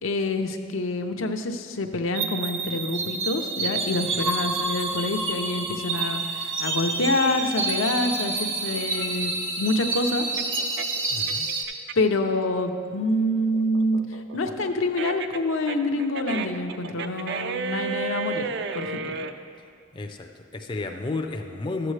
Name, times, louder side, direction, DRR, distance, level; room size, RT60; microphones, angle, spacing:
voice 1, 0.0-10.3 12.0-18.4 18.7-19.2, left 2 dB, 85° left, 5 dB, 0.6 m, -26 dB
sound 1, 2.1-11.6, right 3 dB, 80° right, 1.1 m, -28 dB
sound 2, 8.7-12.2 12.6-19.3, right 5 dB, 60° right, 0.4 m, -33 dB
voice 2, 11.1-11.5 19.9-21.9, left 3 dB, 25° left, 4 dB, 0.4 m, -32 dB
13.0 x 7.7 x 3.2 m, 2.2 s
head